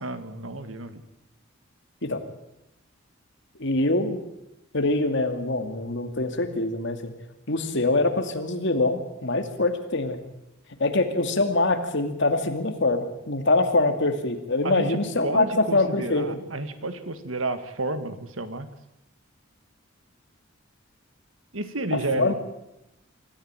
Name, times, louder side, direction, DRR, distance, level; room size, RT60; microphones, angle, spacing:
voice 1, 0.0-1.0 14.6-18.7 21.5-22.3, right 2 dB, 80° right, 10 dB, 1.9 m, -31 dB
voice 2, 3.6-4.2 4.7-7.1 7.5-10.2 10.8-16.4 21.9-22.3, left 2 dB, 65° left, 7 dB, 2.4 m, -24 dB
24.5 x 14.0 x 9.0 m, 0.87 s
head